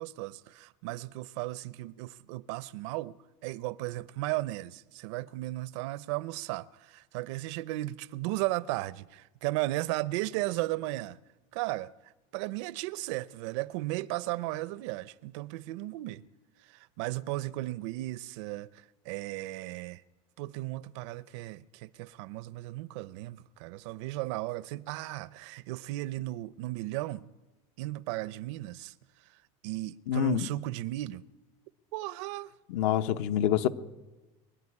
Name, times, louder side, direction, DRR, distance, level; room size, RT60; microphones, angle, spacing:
voice 1, 0.0-3.2 3.4-11.2 11.5-11.9 12.3-16.2 16.7-18.7 19.0-20.0 20.4-27.3 27.8-28.9 29.6-31.2 31.9-32.5, right 18 dB, 75° right, 0.6 m, -35 dB
voice 2, 30.1-30.5 32.7-33.7, left 11 dB, 70° left, 1.0 m, -26 dB
24.0 x 11.5 x 9.8 m
cardioid pair, 170°, 15 cm